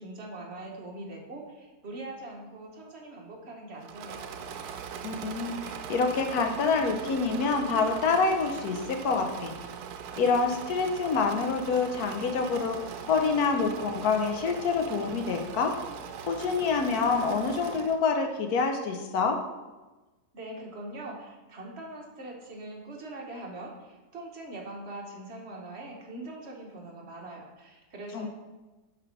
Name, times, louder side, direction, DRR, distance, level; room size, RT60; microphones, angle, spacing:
voice 1, 0.0-4.3 20.3-28.3, right 2 dB, 45° right, 0 dB, 1.3 m, -42 dB
Engine / Mechanisms, 3.8-18.1, right 7 dB, 85° right, 1.1 m, -41 dB
voice 2, 5.0-9.5 10.2-12.8 13.1-15.7 16.3-19.4 28.1-28.3, left 4 dB, 75° left, 5 dB, 1.3 m, -27 dB
6.7 x 3.7 x 5.8 m, 1.2 s
omnidirectional pair, 1.6 m